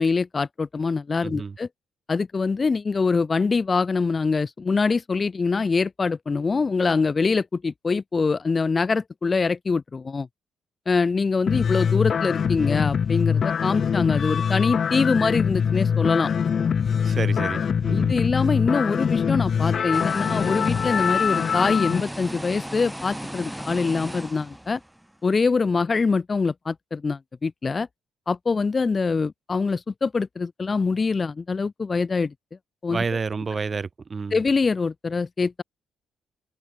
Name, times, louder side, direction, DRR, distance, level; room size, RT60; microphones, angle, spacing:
voice 1, 0.0-1.7 2.1-10.3 10.9-16.3 17.9-24.8 25.2-27.9 28.3-32.3 32.8-33.2 34.3-35.6, left 4 dB, 30° left, 0.5 m, -24 dB
voice 2, 1.2-1.5 17.0-18.2 32.9-34.4, right 5 dB, 35° right, 0.9 m, -29 dB
sound 1, 11.5-22.0, left 7 dB, 50° left, 1.1 m, -23 dB
sound 2, 19.9-25.1, equal, 5° right, 7.5 m, -35 dB
cardioid pair, 90°, 0 cm